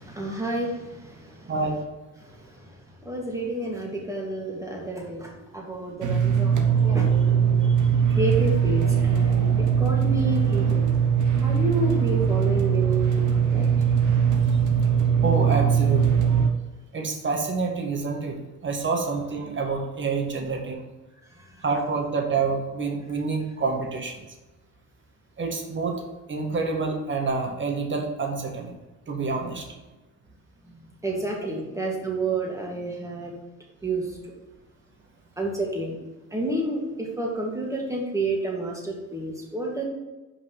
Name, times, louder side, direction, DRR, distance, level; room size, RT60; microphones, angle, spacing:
voice 1, 0.0-1.5 2.2-2.7 3.0-7.7 8.2-10.9 11.4-13.7 29.2-29.3 30.7-30.8 31.0-33.3 33.8-34.2 35.4-36.0 36.3-39.8, right 2 dB, 10° right, -1 dB, 2.1 m, -30 dB
voice 2, 1.5-1.8 8.1-8.2 15.2-16.2 16.9-18.4 18.6-20.8 21.6-24.2 25.4-28.8 29.1-29.7, right 4 dB, 40° right, 2 dB, 1.6 m, -27 dB
sound 1, 6.0-16.5, right 7 dB, 80° right, 1.0 m, -21 dB
5.7 x 5.3 x 5.8 m, 1.1 s
cardioid pair, 90°, 30 cm